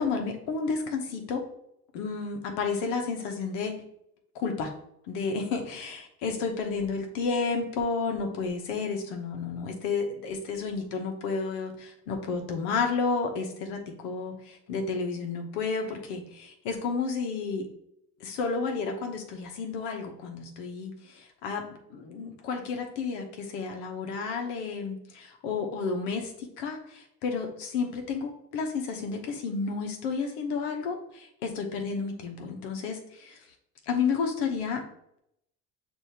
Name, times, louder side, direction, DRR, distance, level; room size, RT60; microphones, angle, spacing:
voice 1, 0.0-1.4 1.9-3.7 4.3-4.7 5.1-17.6 18.2-33.4 33.9-34.8, left 4 dB, 90° left, 4 dB, 1.0 m, -31 dB
6.5 x 2.7 x 2.8 m, 0.76 s
supercardioid pair, 105°, 35 cm